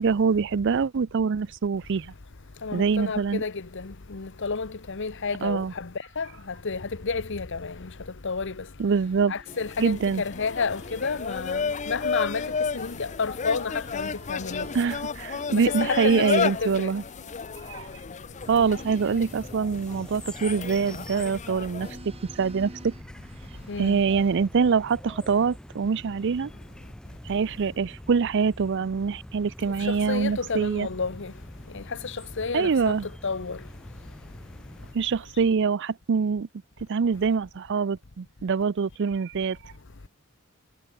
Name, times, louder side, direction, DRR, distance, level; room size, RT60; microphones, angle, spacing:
voice 1, 0.0-2.1 2.7-3.4 5.4-5.7 8.8-9.3 9.8-10.2 14.7-17.0 17.7-17.9 18.5-21.9 22.4-22.9 23.8-26.5 27.3-30.9 32.5-33.1 34.9-36.5 36.9-39.6, right 5 dB, 60° right, 0.5 m, -24 dB
voice 2, 2.6-5.9 6.2-7.9 8.2-8.6 9.3-12.4 12.7-14.7 15.5-16.9 23.7-24.0 29.9-31.3 31.7-32.9 33.2-33.6, left 4 dB, 65° left, 1.0 m, -31 dB
sound 1, 8.8-11.6 11.9-21.3 21.7-24.5 25.1-26.4, right 2 dB, 30° right, 1.2 m, -52 dB
sound 2, 9.5-22.0, left 5 dB, 35° left, 0.6 m, -33 dB
sound 3, 18.4-34.9, equal, 5° left, 0.6 m, -45 dB
head